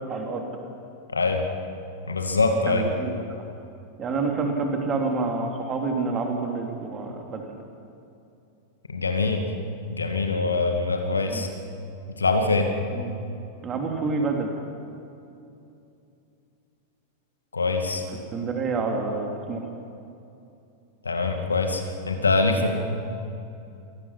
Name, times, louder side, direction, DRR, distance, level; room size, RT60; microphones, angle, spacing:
voice 1, 0.1-0.5 2.7-3.1 4.0-7.4 11.3-11.4 12.9-13.1 13.6-14.5 18.3-19.7, right 4 dB, 25° right, 2 dB, 3.2 m, -28 dB
voice 2, 1.1-1.4 2.1-2.9 8.9-9.4 9.9-11.5 12.2-12.7 17.5-18.0 21.0-22.7, left 3 dB, 75° left, 5 dB, 2.3 m, -23 dB
25.5 x 18.0 x 5.9 m, 2.7 s
figure-of-eight pair, 90°, 0 cm